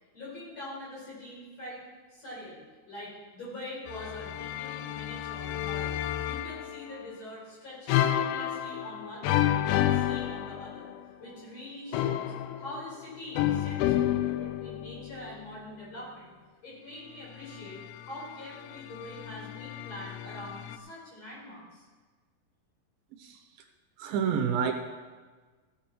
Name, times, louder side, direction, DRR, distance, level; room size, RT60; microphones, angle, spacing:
voice 1, 0.1-1.8 2.1-6.0 6.3-10.9 11.2-12.3 12.6-16.3 16.6-21.9, left 1 dB, 45° left, -6 dB, 6.1 m, -44 dB
sound 1, 3.9-7.0 7.9-11.1 11.9-15.3 17.4-20.8, left 12 dB, 90° left, 2.5 m, -31 dB
voice 2, 23.2-23.7 24.0-24.7, right 7 dB, 75° right, 5 dB, 2.7 m, -29 dB
15.0 x 9.2 x 4.5 m, 1.4 s
omnidirectional pair, 4.4 m